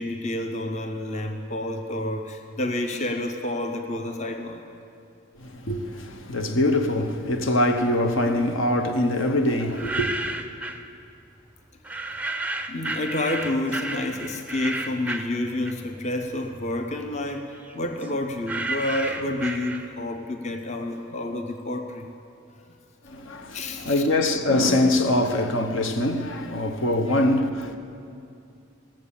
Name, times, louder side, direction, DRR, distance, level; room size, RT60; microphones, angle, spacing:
voice 1, 0.0-4.6 12.7-22.1 23.5-24.1, left 1 dB, 35° left, 0.7 m, -29 dB
voice 2, 5.4-10.1 23.1-27.8, left 1 dB, 75° left, 0.9 m, -23 dB
sound 1, 9.6-10.9 11.8-16.1 16.4-20.2, right 2 dB, 5° right, 0.4 m, -32 dB
18.0 x 7.5 x 7.0 m
head